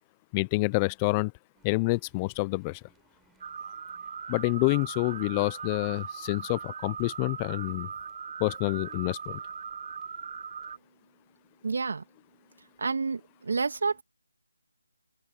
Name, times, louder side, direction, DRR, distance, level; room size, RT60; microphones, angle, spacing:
voice 1, 0.3-1.3 1.6-2.8 4.3-7.9 8.4-9.4, left 26 dB, 15° left, 0.3 m, -27 dB
sound 1, 1.5-10.8, right 9 dB, 5° right, 5.3 m, -67 dB
sound 2, 3.4-10.8, right 6 dB, 40° right, 0.9 m, -40 dB
voice 2, 11.6-12.0 12.8-14.0, right 4 dB, 55° right, 2.4 m, -29 dB
open air
hypercardioid pair, 170°, 0 cm